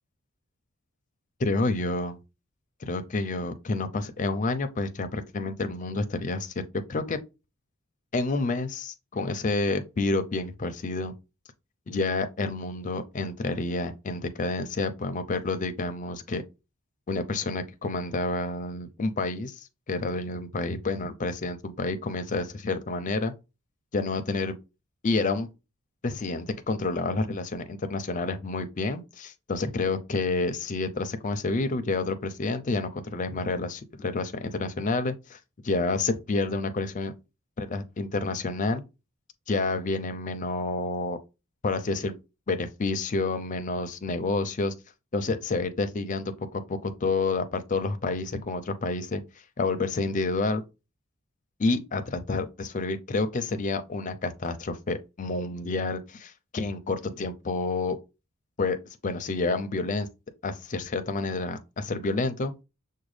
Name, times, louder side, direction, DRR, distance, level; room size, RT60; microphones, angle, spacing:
voice 1, 1.4-2.1 2.8-6.5 6.9-7.2 8.1-11.1 11.9-16.4 17.1-19.6 19.9-23.3 23.9-24.5 25.0-25.5 26.0-35.4 35.6-37.1 37.6-38.8 39.5-41.2 41.6-42.2 42.5-44.7 45.1-49.2 49.6-50.6 51.6-58.0 58.6-58.8 59.0-60.1 60.4-62.5, left 3 dB, 35° left, 0.5 m, -29 dB
6.1 x 2.2 x 3.2 m
head